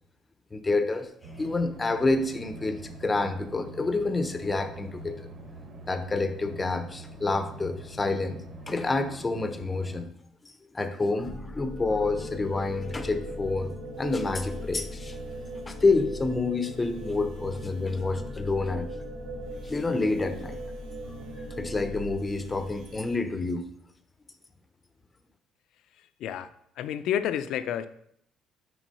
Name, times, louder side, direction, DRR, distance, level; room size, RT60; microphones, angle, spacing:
voice 1, 0.5-1.1 1.4-5.3 5.9-8.4 8.7-10.1 10.4-13.7 14.0-15.2 15.7-18.9 19.6-20.6 21.4-23.6, left 3 dB, 15° left, 9 dB, 0.6 m, -28 dB
sound 1, 1.2-10.0, right 2 dB, 40° right, 1.1 m, -44 dB
sound 2, 11.2-23.2, equal, 70° right, 2.2 m, -39 dB
voice 2, 26.8-27.9, left 10 dB, 60° left, 12 dB, 0.5 m, -29 dB
6.1 x 4.7 x 5.4 m, 0.70 s
cardioid pair, 170°, 0 cm